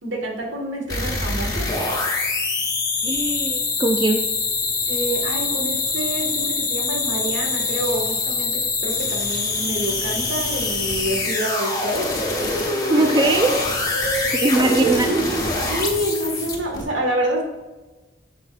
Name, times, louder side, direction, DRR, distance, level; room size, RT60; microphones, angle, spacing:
voice 1, 0.0-1.6 4.9-8.5 8.8-12.1 12.9-13.1 13.9-14.3 14.6-15.0 15.7-17.4, right 1 dB, 80° right, 0 dB, 1.7 m, -27 dB
sound 1, 0.9-16.8, left 3 dB, 20° left, 1.2 m, -24 dB
voice 2, 3.0-4.3 12.9-13.7 14.3-15.2, right 2 dB, 25° right, 5 dB, 0.4 m, -20 dB
9.8 x 6.2 x 2.5 m, 1.2 s
head